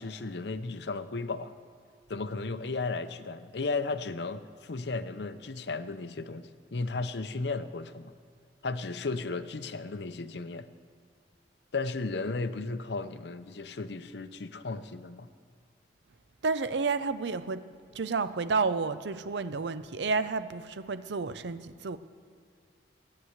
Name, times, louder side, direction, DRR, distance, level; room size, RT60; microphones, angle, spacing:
voice 1, 0.0-1.5 2.1-8.1 8.6-10.7 11.7-15.3, left 3 dB, 70° left, 12 dB, 0.7 m, -35 dB
voice 2, 16.4-17.7 17.9-22.0, right 4 dB, 75° right, 13 dB, 0.6 m, -30 dB
16.0 x 9.7 x 8.0 m, 2.2 s
head